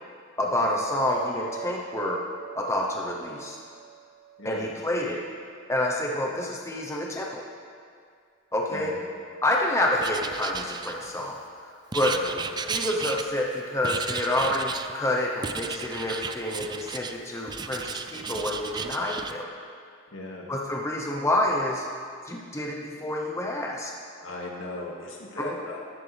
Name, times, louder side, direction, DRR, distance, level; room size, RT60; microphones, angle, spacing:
voice 1, 0.4-2.2 2.5-3.6 4.4-5.2 5.7-7.4 8.5-8.9 9.4-11.4 11.6-12.1 12.7-19.5 20.5-21.9 22.3-23.9 25.4-25.5, left 1 dB, 15° left, -1 dB, 0.8 m, -28 dB
sound 1, 1.1-5.8, right 11 dB, 45° right, 2.9 m, -44 dB
voice 2, 4.4-4.7 8.7-9.0 12.1-12.4 20.1-20.5 24.2-25.8, left 2 dB, 75° left, -2 dB, 2.2 m, -38 dB
Writing, 10.0-11.3 11.9-13.5 13.8-14.9 15.4-17.2 17.5-19.3, right 5 dB, 20° right, 0.4 m, -34 dB
13.5 x 13.0 x 3.4 m, 2.2 s
head